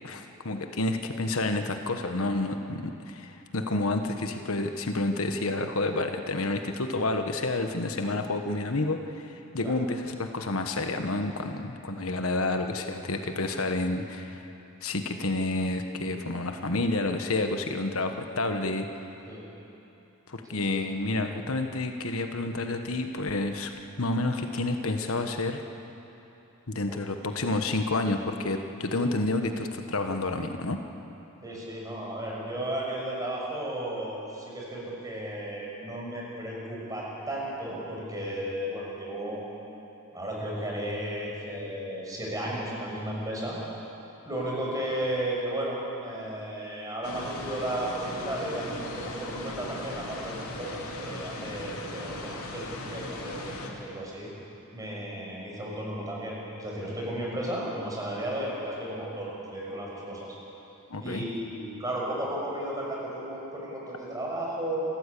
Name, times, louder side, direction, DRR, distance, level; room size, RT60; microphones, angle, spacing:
voice 1, 0.0-14.5 14.8-18.9 20.3-25.6 26.7-30.8 60.9-61.2, left 2 dB, 70° left, 6 dB, 1.3 m, -29 dB
voice 2, 20.5-20.8 26.9-27.0 31.4-39.4 40.1-43.6 44.2-54.3 54.7-60.3 61.0-64.8, right 1 dB, 15° right, -4 dB, 6.2 m, -34 dB
sound 1, 47.0-53.7, left 2 dB, 90° left, 2.9 m, -38 dB
28.5 x 15.0 x 8.5 m, 3.0 s
head